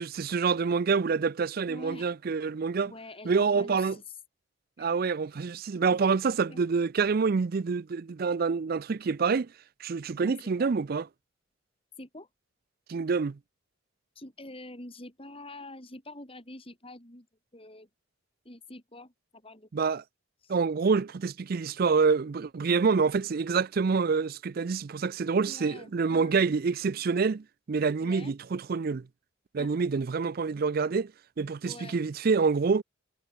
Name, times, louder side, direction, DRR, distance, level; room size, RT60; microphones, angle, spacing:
voice 1, 0.0-2.9 3.2-4.0 4.8-9.5 9.8-11.1 12.9-13.4 19.7-20.0 20.5-29.1 29.5-31.1 31.4-32.8, right 5 dB, 45° right, 0.4 m, -27 dB
voice 2, 1.7-2.1 2.8-4.0 4.8-4.9 6.5-6.6 10.2-10.8 12.0-12.3 14.2-17.3 17.5-17.9 18.5-19.9 20.4-20.6 25.4-26.5 28.0-28.4 29.6-29.7 31.6-32.0, left 2 dB, 25° left, 5.2 m, -46 dB
head